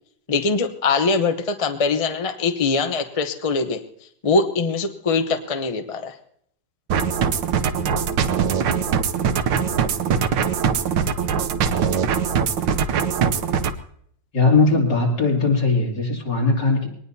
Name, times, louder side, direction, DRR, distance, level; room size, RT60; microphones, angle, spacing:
voice 1, 0.3-3.8 4.2-6.1, left 4 dB, 30° left, 7 dB, 0.7 m, -22 dB
sound 1, 6.9-13.7, right 7 dB, 85° right, 1.6 m, -22 dB
voice 2, 14.3-16.9, left 3 dB, 75° left, -1 dB, 3.5 m, -19 dB
23.0 x 19.0 x 2.8 m, 0.68 s
omnidirectional pair, 1.9 m